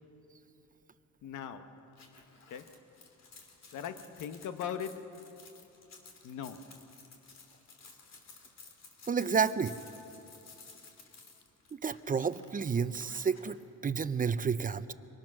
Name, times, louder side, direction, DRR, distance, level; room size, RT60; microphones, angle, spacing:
voice 1, 1.2-1.7 2.5-2.7 3.7-5.3 6.2-6.7, left 8 dB, 80° left, 1.2 m, -40 dB
sound 1, 1.9-13.6, left 4 dB, 60° left, 3.0 m, -55 dB
voice 2, 9.1-9.8 11.8-13.6 13.8-14.9, right 6 dB, 30° right, 0.7 m, -30 dB
24.5 x 19.5 x 6.1 m
cardioid pair, 90°, 30 cm